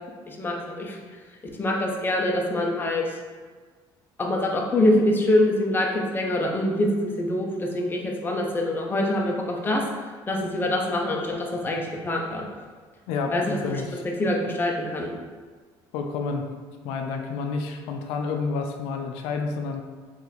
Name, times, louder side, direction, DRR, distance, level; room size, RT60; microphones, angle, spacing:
voice 1, 0.3-1.0 1.6-3.0 4.2-9.8 10.3-12.4 13.3-13.8 14.2-15.1, left 1 dB, 20° left, 0 dB, 0.7 m, -24 dB
voice 2, 13.1-14.0 15.9-16.5 16.8-19.8, left 4 dB, 90° left, 4 dB, 0.4 m, -29 dB
3.3 x 3.0 x 3.9 m, 1.5 s
cardioid pair, 115°, 10 cm